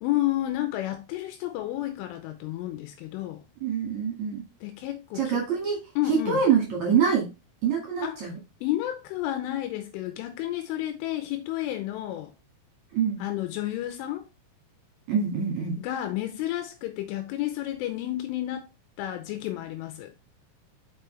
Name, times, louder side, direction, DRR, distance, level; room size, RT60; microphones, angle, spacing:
voice 1, 0.0-3.5 4.6-5.4 6.0-6.4 8.0-8.2 8.6-12.3 13.2-14.3 15.8-18.7 19.0-20.1, left 14 dB, 85° left, 3.0 m, -31 dB
voice 2, 3.6-4.4 5.1-7.3 7.6-8.4 12.9-13.2 15.1-15.8, right 6 dB, 50° right, 2.5 m, -25 dB
6.7 x 5.7 x 3.3 m
omnidirectional pair, 6.0 m